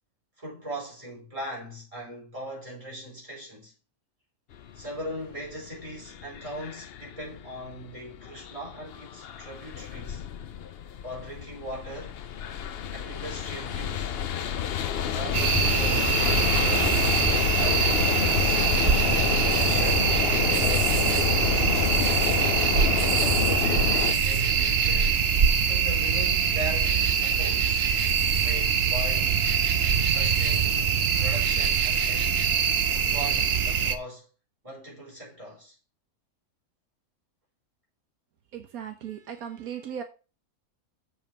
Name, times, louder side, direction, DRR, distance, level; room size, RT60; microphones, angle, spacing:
voice 1, 0.4-3.7 4.7-10.2 11.0-12.2 12.9-14.2 15.1-17.0 17.5-18.6 19.5-21.9 23.1-25.2 25.7-27.9 28.4-29.5 30.0-32.5 32.9-34.3 34.6-35.7, equal, 20° right, 5.3 m, -39 dB
sound 1, 4.5-24.1, left 9 dB, 55° left, 0.7 m, -29 dB
sound 2, 15.3-34.0, right 7 dB, 50° right, 0.9 m, -24 dB
voice 2, 38.5-40.0, right 8 dB, 85° right, 1.4 m, -37 dB
7.1 x 5.6 x 6.0 m
omnidirectional pair, 1.5 m